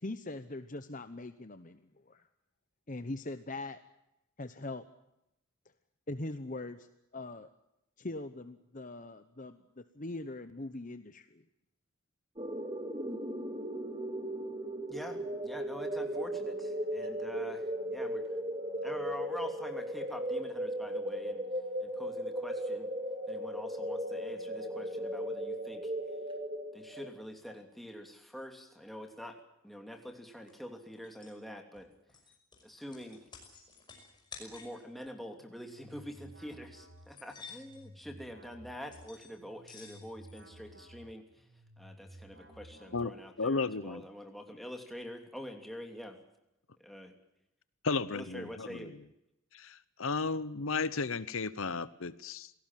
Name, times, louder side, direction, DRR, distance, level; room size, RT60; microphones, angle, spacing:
voice 1, 0.0-2.2 2.9-3.8 4.4-4.8 6.1-6.9 7.1-7.5 8.0-11.4, left 2 dB, 35° left, 10 dB, 0.9 m, -41 dB
sound 1, 12.4-27.1, right 1 dB, 25° right, 2.3 m, -37 dB
voice 2, 14.9-18.2 18.8-21.4 21.8-22.9 23.3-25.9 26.7-29.4 29.6-31.9 32.6-33.2 34.4-41.4 41.8-46.2 46.8-47.1 48.1-48.9, equal, ahead, 3 dB, 2.9 m, -46 dB
sound 2, 30.5-30.6 31.0-31.4 31.7-34.8 35.9-36.0 36.4-36.5 37.0-37.8 38.9-39.3 39.6-40.4, left 5 dB, 20° left, 5.8 m, -52 dB
sound 3, 35.4-43.4, equal, 55° right, 6.7 m, -55 dB
voice 3, 43.4-44.0 47.8-49.0 49.5-52.5, left 4 dB, 70° left, 16 dB, 0.9 m, -34 dB
27.5 x 18.0 x 7.5 m, 0.87 s
head